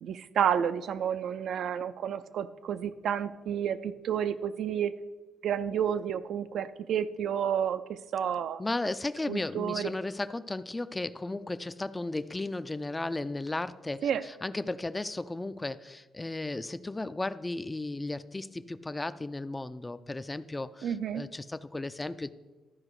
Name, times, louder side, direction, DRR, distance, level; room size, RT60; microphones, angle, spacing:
voice 1, 0.0-4.9 5.4-8.6 9.3-9.9 14.0-14.2 20.8-21.2, right 8 dB, 70° right, 12 dB, 0.4 m, -30 dB
voice 2, 8.6-22.3, left 2 dB, 15° left, 13 dB, 0.4 m, -35 dB
12.5 x 4.9 x 4.8 m, 1.2 s
cardioid pair, 90°, 0 cm